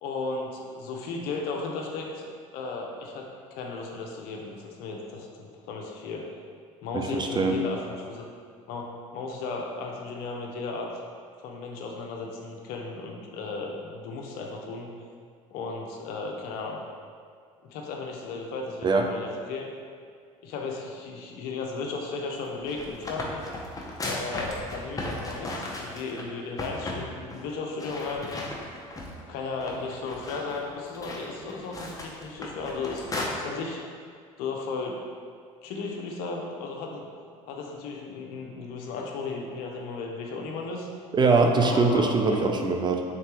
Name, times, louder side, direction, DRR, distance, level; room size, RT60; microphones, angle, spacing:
voice 1, 0.0-6.3 6.8-8.2 8.7-10.9 11.4-14.9 15.5-16.8 17.6-19.7 20.4-23.4 24.0-28.3 29.3-33.8 34.4-35.1 35.6-37.1 37.5-40.9 41.6-42.5, left 3 dB, 65° left, 1 dB, 0.6 m, -35 dB
voice 2, 6.9-7.6 18.8-19.1 41.1-43.0, right 3 dB, 25° right, 3 dB, 0.4 m, -22 dB
sound 1, 22.4-26.2 26.6-27.0 27.3-27.4 27.8-29.2 29.6-33.3, left 2 dB, 20° left, 0.7 m, -36 dB
3.7 x 3.3 x 2.9 m, 2.1 s
hypercardioid pair, 65°, 18 cm